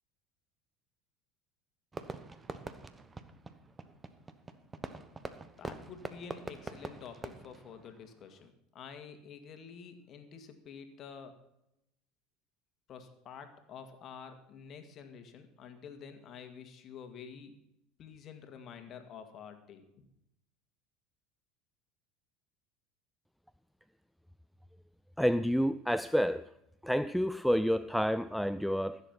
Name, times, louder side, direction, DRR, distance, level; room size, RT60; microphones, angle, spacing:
Fireworks, 1.9-8.5, right 3 dB, 20° right, 1.1 m, -45 dB
voice 1, 5.6-11.4 12.9-17.6 18.0-20.0, left 6 dB, 45° left, 7 dB, 2.0 m, -49 dB
voice 2, 25.2-26.5 26.8-29.0, equal, ahead, 14 dB, 0.4 m, -29 dB
15.0 x 7.4 x 5.9 m, 0.82 s
hypercardioid pair, 80°, 0 cm